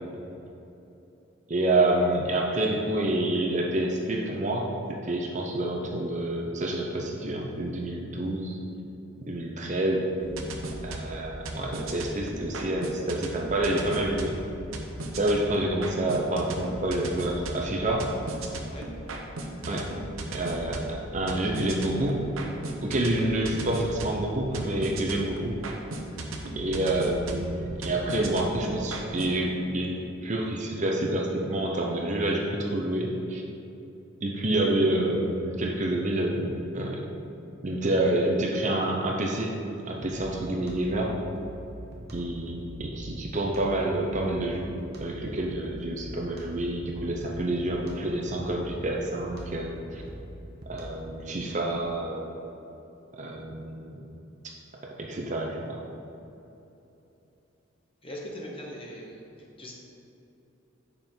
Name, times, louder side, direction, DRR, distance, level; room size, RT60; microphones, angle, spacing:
voice 1, 1.5-8.6 9.2-10.1 10.8-14.4 15.2-18.1 19.6-19.9 20.3-22.2 22.8-25.5 26.6-29.9 30.2-33.4 34.2-37.0 37.6-39.5 39.9-41.1 42.1-44.7 45.0-50.0 50.7-52.3 53.2-54.0 55.0-55.8, right 1 dB, 35° right, 0 dB, 0.8 m, -28 dB
sound 1, 10.2-29.4, right 2 dB, 85° right, 0.8 m, -37 dB
sound 2, 40.0-51.2, equal, 50° right, 1.1 m, -43 dB
voice 2, 58.0-59.3 59.6-59.7, equal, 25° left, -2 dB, 1.0 m, -40 dB
7.6 x 5.5 x 4.5 m, 2.9 s
head